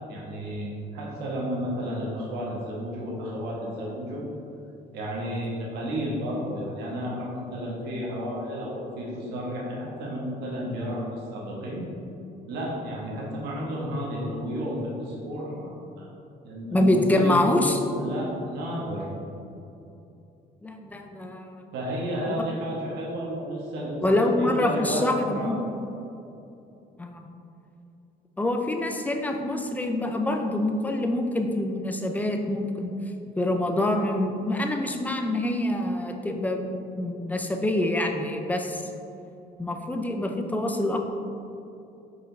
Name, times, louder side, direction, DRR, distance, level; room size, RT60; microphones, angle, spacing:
voice 1, 0.1-4.2 4.9-11.8 12.5-16.1 16.4-17.7 17.9-19.0 21.7-25.5, equal, 80° right, -4 dB, 1.4 m, -32 dB
voice 2, 16.7-17.8 20.6-21.6 22.3-22.4 24.0-25.6 27.0-27.2 28.4-32.9 33.4-38.9 39.6-41.0, left 1 dB, 10° left, 3 dB, 0.5 m, -26 dB
5.0 x 5.0 x 3.9 m, 2.8 s
cardioid pair, 110°, 17 cm